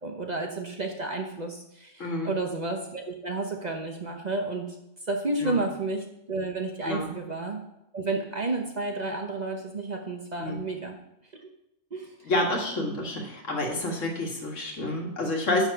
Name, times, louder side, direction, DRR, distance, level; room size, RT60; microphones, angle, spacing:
voice 1, 0.0-4.8 5.1-7.6 7.9-11.0 11.4-11.5 11.9-12.3, right 2 dB, 40° right, 2 dB, 0.8 m, -31 dB
voice 2, 2.0-2.3 5.4-5.6 6.8-7.1 10.4-10.6 12.2-15.7, left 2 dB, 70° left, 0 dB, 1.9 m, -28 dB
10.5 x 3.6 x 6.9 m, 0.84 s
omnidirectional pair, 1.3 m